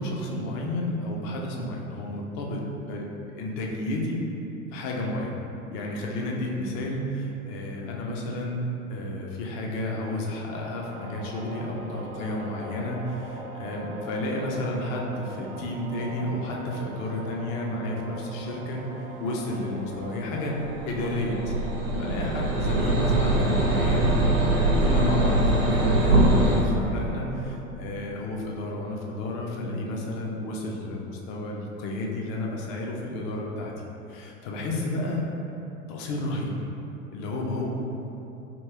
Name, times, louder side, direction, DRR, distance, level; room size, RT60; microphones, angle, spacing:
voice 1, 0.0-2.6 2.9-3.0 3.3-4.2 4.7-5.3 5.7-18.8 19.2-21.5 22.0-33.7 34.1-35.2 35.9-36.5 37.1-37.7, left 1 dB, 30° left, -1 dB, 0.4 m, -31 dB
sound 1, 10.4-27.6, right 1 dB, 40° right, 0.5 m, -42 dB
sound 2, 20.5-26.6, right 2 dB, 80° right, 0.9 m, -22 dB
2.9 x 2.9 x 3.3 m, 3.0 s
figure-of-eight pair, 90°, 40 cm